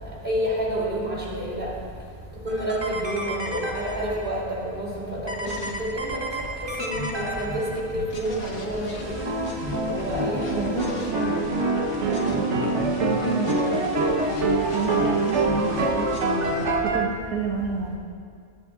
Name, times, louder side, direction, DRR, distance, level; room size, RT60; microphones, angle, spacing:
voice 1, 0.2-1.7 2.4-5.5 5.8-6.3 6.8-7.6 7.9-8.9 9.8-10.9, equal, 35° right, -5 dB, 3.1 m, -29 dB
sound 1, 2.5-4.4 5.3-8.1 9.0-16.5, equal, 20° right, 1.2 m, -30 dB
sound 2, 5.1-11.1 11.4-16.8, left 3 dB, 85° left, 1.6 m, -38 dB
voice 2, 10.5-11.4 12.1-14.0 14.7-18.0, right 4 dB, 80° right, -2 dB, 1.5 m, -30 dB
sound 3, 11.1-17.1, right 4 dB, 60° right, 1.1 m, -26 dB
20.5 x 10.5 x 2.4 m, 2.2 s
omnidirectional pair, 1.5 m